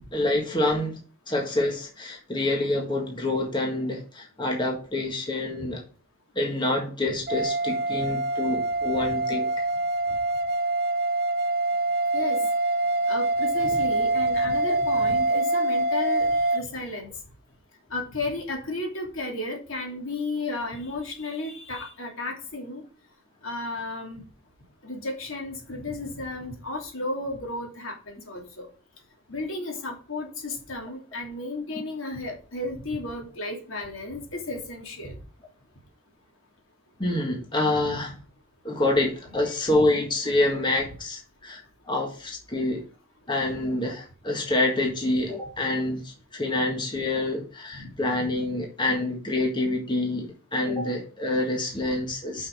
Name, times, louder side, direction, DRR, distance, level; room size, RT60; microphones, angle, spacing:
voice 1, 0.1-1.0 1.3-5.8 6.4-9.5 14.7-14.8 37.0-38.1 38.6-42.8 43.3-52.5, left 2 dB, 20° left, 0 dB, 1.8 m, -27 dB
sound 1, 7.3-16.6, right 2 dB, 50° right, 0.8 m, -25 dB
voice 2, 13.1-17.1 17.9-22.8 23.4-24.2 24.8-28.7 29.3-35.1 47.7-47.9, left 2 dB, 75° left, 1 dB, 2.8 m, -33 dB
6.2 x 5.9 x 6.1 m, 0.38 s
head